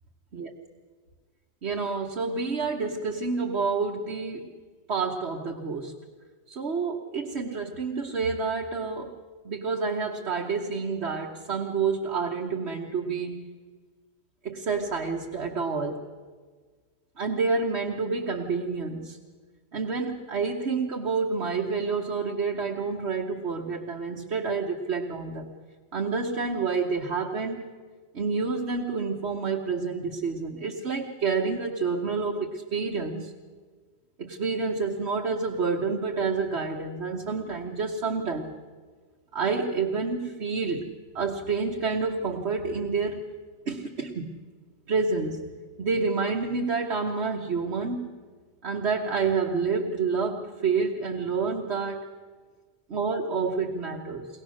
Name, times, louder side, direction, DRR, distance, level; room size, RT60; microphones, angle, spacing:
voice 1, 1.6-4.5 4.9-5.9 6.5-9.2 9.4-13.5 14.4-16.0 17.2-19.2 19.7-25.5 25.9-27.6 28.1-33.3 34.2-38.5 39.3-43.2 43.7-44.4 44.9-45.4 45.8-48.1 48.6-52.0 52.9-54.3, right 4 dB, 90° right, -1 dB, 1.5 m, -28 dB
22.5 x 19.0 x 6.4 m, 1.5 s
omnidirectional pair, 1.1 m